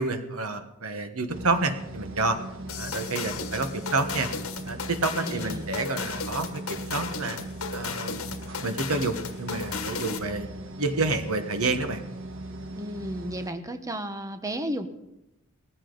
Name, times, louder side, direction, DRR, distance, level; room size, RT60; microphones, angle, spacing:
voice 1, 0.0-2.4 2.7-4.3 4.6-7.4 7.7-8.3 8.6-10.5 10.8-12.0, right 3 dB, 90° right, 8 dB, 1.4 m, -29 dB
sound 1, 1.3-13.5, right 1 dB, 60° right, 1.5 m, -39 dB
sound 2, 2.7-10.3, left 5 dB, 75° left, 1.5 m, -35 dB
voice 2, 5.2-5.7 12.8-14.9, right 1 dB, 15° right, 8 dB, 0.9 m, -33 dB
18.5 x 15.0 x 4.0 m, 0.90 s
head